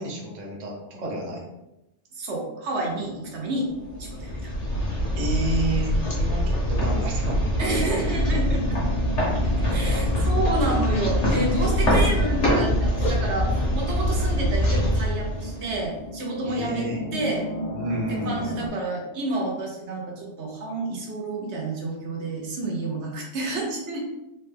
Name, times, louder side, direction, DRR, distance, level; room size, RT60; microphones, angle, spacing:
voice 1, 0.0-1.4 5.2-8.0 9.1-9.2 16.4-17.0 17.7-18.6, right 2 dB, 45° right, -1 dB, 0.8 m, -31 dB
voice 2, 2.1-3.7 4.0-4.5 7.6-8.8 9.4-17.5 18.1-24.0, right 2 dB, 80° right, -1 dB, 1.1 m, -29 dB
sound 1, 2.9-18.7, equal, 60° left, 0.5 m, -36 dB
sound 2, 3.9-16.0, equal, 85° left, 1.4 m, -24 dB
4.1 x 2.2 x 3.3 m, 0.91 s
omnidirectional pair, 1.2 m